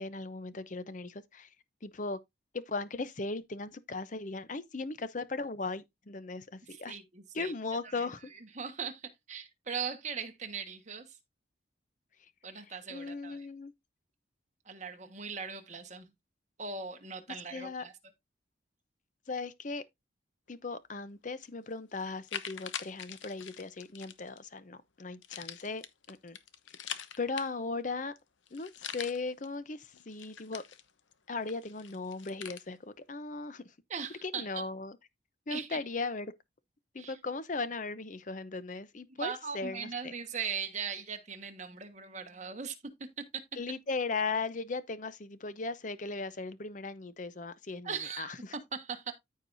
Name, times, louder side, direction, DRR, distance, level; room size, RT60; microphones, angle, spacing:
voice 1, 0.0-1.5 1.8-2.2 2.5-7.0 7.3-8.2 12.9-13.7 17.5-17.9 19.3-19.8 20.5-26.4 27.2-28.1 28.5-30.6 31.3-33.6 34.2-35.0 35.5-36.3 36.9-40.1 43.6-48.5, left 3 dB, 40° left, 0.7 m, -37 dB
voice 2, 6.7-7.5 7.8-11.2 12.4-13.5 14.6-16.1 16.6-17.9 33.9-34.7 35.5-35.8 37.0-37.2 39.2-43.4 47.8-49.1, right 6 dB, 40° right, 1.4 m, -40 dB
sound 1, 21.4-21.5 22.0-24.4 25.2-27.8 28.2-28.3 28.5-29.5 29.9-31.1 31.5-32.6, left 9 dB, 90° left, 0.9 m, -43 dB
14.0 x 4.7 x 2.6 m
head